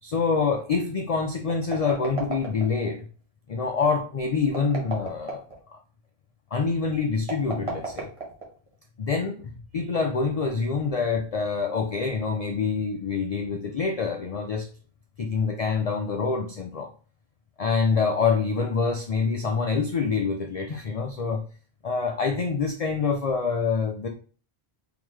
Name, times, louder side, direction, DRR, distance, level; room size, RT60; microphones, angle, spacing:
voice 1, 0.0-3.1 3.5-5.8 6.5-8.1 9.0-14.7 15.2-16.9 17.6-21.4 21.8-24.1, left 5 dB, 55° left, 3 dB, 0.4 m, -26 dB
sound 1, 1.5-2.9 4.4-5.6 7.2-8.7, right 3 dB, 30° right, 1.1 m, -34 dB
3.9 x 3.0 x 3.1 m, 0.40 s
omnidirectional pair, 1.1 m